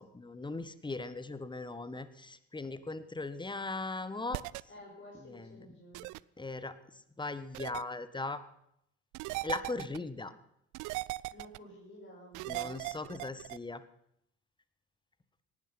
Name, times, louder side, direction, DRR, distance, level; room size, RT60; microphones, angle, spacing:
voice 1, 0.0-4.4 5.3-5.6 6.4-6.7 7.2-8.4 9.4-10.3 12.5-13.8, left 3 dB, 15° left, 13 dB, 1.4 m, -39 dB
sound 1, 4.3-4.6 5.9-6.2 7.5-7.8 9.1-10.0 10.7-11.6 12.3-13.6, right 22 dB, 60° right, 0.5 m, -38 dB
voice 2, 4.7-6.1 11.3-13.2, equal, 35° left, -3 dB, 6.4 m, -52 dB
18.0 x 11.5 x 5.8 m, 0.76 s
hypercardioid pair, 60°, 35 cm